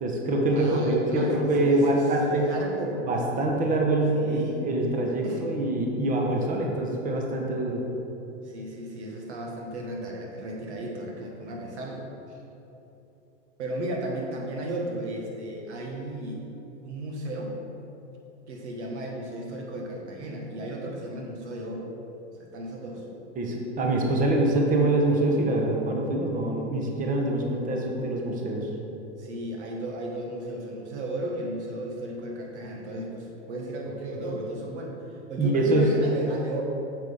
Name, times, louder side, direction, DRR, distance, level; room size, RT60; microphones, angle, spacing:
voice 1, 0.0-2.5 3.1-7.8 23.4-28.7 35.4-35.9, right 1 dB, 25° right, 0 dB, 1.1 m, -24 dB
voice 2, 0.5-3.0 4.1-4.6 5.2-5.4 8.4-12.4 13.6-16.5 16.8-17.5 18.5-21.9 22.5-23.1 29.2-36.6, right 1 dB, 70° right, 0 dB, 1.7 m, -35 dB
8.1 x 6.6 x 3.5 m, 3.0 s
hypercardioid pair, 115°, 35 cm